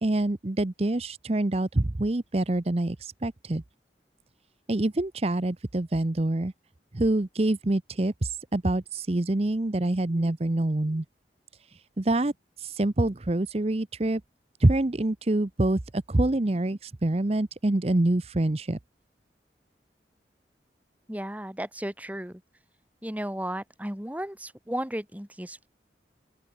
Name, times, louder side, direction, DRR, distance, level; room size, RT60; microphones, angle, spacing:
voice 1, 0.0-3.6 4.7-6.5 6.9-11.0 12.0-12.3 12.6-14.2 14.6-18.8, right 1 dB, 35° right, 0.8 m, -26 dB
voice 2, 21.1-22.4 23.0-25.7, right 1 dB, 10° right, 1.7 m, -34 dB
open air
head